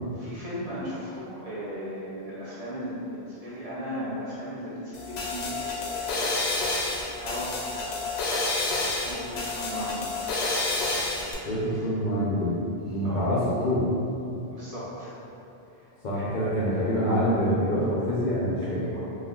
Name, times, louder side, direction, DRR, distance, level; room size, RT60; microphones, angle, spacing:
voice 1, 0.1-6.3 7.1-8.1 8.8-10.0 10.3-11.6 13.0-13.3 14.5-15.2 15.7-15.9 16.1-17.1 18.6-19.0, equal, 45° right, -10 dB, 0.6 m, -37 dB
sound 1, 4.9-11.3, left 2 dB, 85° left, 0.8 m, -29 dB
voice 2, 11.4-12.5 12.8-13.9 16.0-18.9, equal, 60° left, -8 dB, 0.6 m, -26 dB
2.4 x 2.2 x 3.5 m, 2.8 s
omnidirectional pair, 1.1 m